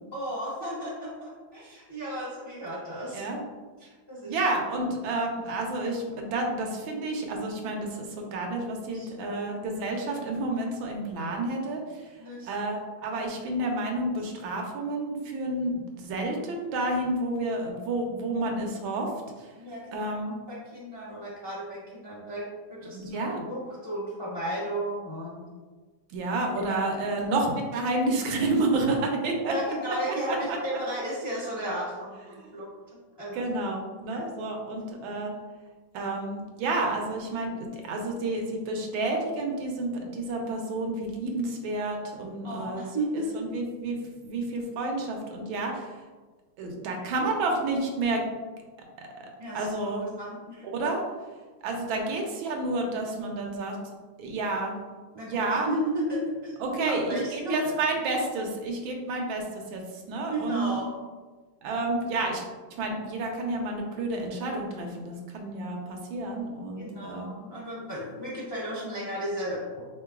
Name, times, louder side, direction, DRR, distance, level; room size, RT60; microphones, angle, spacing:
voice 1, 0.1-3.2 3.8-4.4 8.9-9.4 12.2-12.5 19.6-20.1 20.5-25.5 26.5-26.8 27.1-27.5 29.5-33.4 34.1-34.2 42.4-43.4 47.2-47.3 49.4-50.7 51.9-52.0 55.1-57.7 60.3-61.0 64.4-64.6 66.8-69.8, right 1 dB, 40° left, -8 dB, 0.3 m, -34 dB
voice 2, 4.3-12.1 12.5-19.1 19.4-19.5 19.9-20.3 22.9-23.4 26.1-29.5 30.3-30.8 32.3-32.5 33.3-35.3 35.9-42.9 43.1-44.0 44.2-45.9 46.6-48.2 49.0-49.3 49.5-50.1 50.6-51.0 51.6-53.8 54.2-54.8 55.3-55.7 56.6-59.4 59.7-59.8 60.1-60.8 61.6-62.4 62.7-67.3, right 2 dB, 90° right, 2 dB, 1.4 m, -30 dB
3.7 x 3.3 x 2.3 m, 1.4 s
omnidirectional pair, 2.1 m